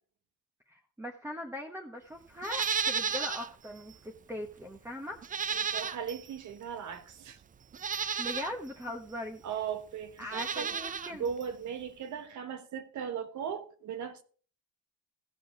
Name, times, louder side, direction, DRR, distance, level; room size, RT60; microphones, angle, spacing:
voice 1, 0.7-5.4 8.2-9.4 10.2-11.3, left 1 dB, 10° right, 1.1 m, -40 dB
Livestock farm animals working animals, 2.4-3.5 3.9-4.0 5.2-6.3 7.1-7.2 7.7-8.5 10.2-11.1 11.4-11.5, right 6 dB, 25° right, 0.4 m, -33 dB
voice 2, 5.5-7.4 9.4-10.7 11.2-14.2, right 7 dB, 70° right, 1.3 m, -38 dB
15.5 x 5.3 x 4.8 m
cardioid pair, 90°, 30 cm